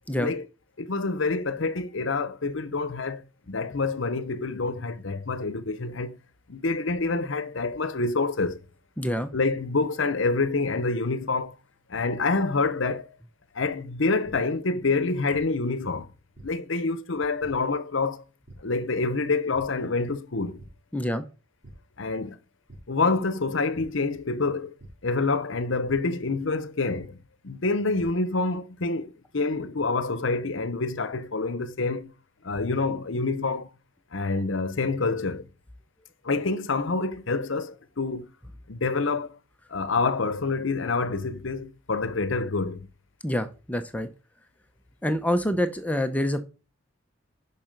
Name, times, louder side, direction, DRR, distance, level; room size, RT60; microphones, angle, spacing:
voice 1, 0.8-6.2 6.5-8.6 9.3-11.5 11.9-13.1 13.5-16.1 16.4-18.2 18.6-20.6 22.0-22.4 22.9-24.7 25.0-32.1 32.4-33.7 34.1-35.5 36.2-38.3 38.7-39.4 39.7-42.9, left 3 dB, 65° left, 0.9 m, -27 dB
voice 2, 9.0-9.3 20.9-21.2 43.2-44.1 45.0-46.4, equal, 5° left, 0.8 m, -26 dB
sound 1, 14.2-14.3 15.3-15.4 16.4-16.5 17.4-17.5 18.5-18.6 19.5-19.6 20.1-20.2 20.6-20.7 21.6-21.7 22.7-22.8 23.7-23.8 24.8-24.9 25.8-25.9 26.9-27.0 27.7-28.0, right 2 dB, 55° right, 3.6 m, -46 dB
7.1 x 5.9 x 6.6 m
head